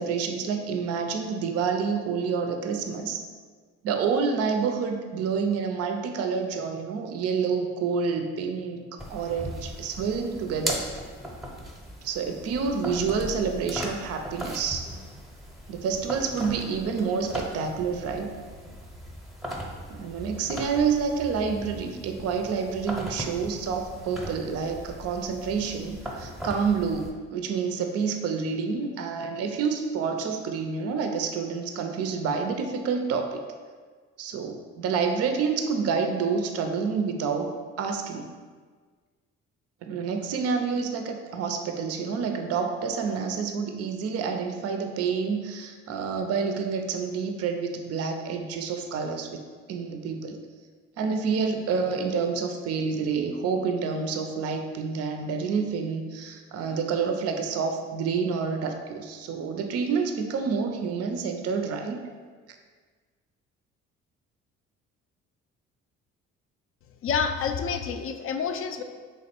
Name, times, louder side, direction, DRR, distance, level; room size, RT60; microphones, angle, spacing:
voice 1, 0.0-3.2 3.8-10.8 12.0-14.9 15.7-18.3 19.9-33.4 34.2-38.3 39.9-49.4 49.7-50.4 51.0-62.0 62.5-62.6, right 5 dB, 55° right, 5 dB, 0.4 m, -28 dB
sound 1, 9.0-27.1, equal, ahead, 0.7 m, -38 dB
voice 2, 67.0-68.8, left 6 dB, 45° left, 7 dB, 0.4 m, -28 dB
3.1 x 2.3 x 4.3 m, 1.5 s
supercardioid pair, 60°, 31 cm